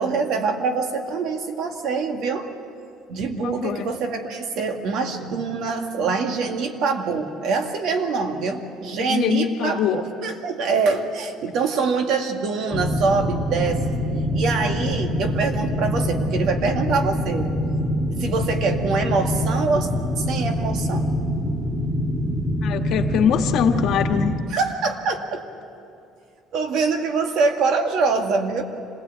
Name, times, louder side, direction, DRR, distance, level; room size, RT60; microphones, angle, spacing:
voice 1, 0.0-2.5 3.1-14.0 14.3-17.5 18.2-19.9 20.2-21.1 24.5-25.4 26.5-28.6, right 4 dB, 65° right, 5 dB, 2.0 m, -24 dB
voice 2, 3.3-3.9 9.0-10.0 22.6-24.3, left 8 dB, 65° left, 4 dB, 1.5 m, -23 dB
sound 1, 12.7-24.4, equal, 10° right, 1.7 m, -25 dB
26.0 x 17.0 x 8.4 m, 2.5 s
cardioid pair, 120°, 0 cm